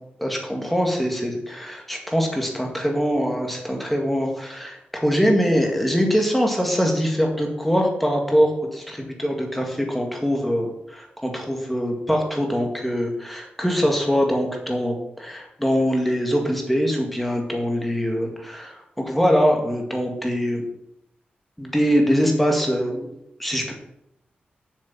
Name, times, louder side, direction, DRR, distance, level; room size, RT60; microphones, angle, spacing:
voice 1, 0.2-20.6 21.6-23.1 23.4-23.7, equal, 5° left, 1 dB, 2.0 m, -23 dB
7.5 x 6.8 x 7.4 m, 0.81 s
wide cardioid pair, 160°, 3 cm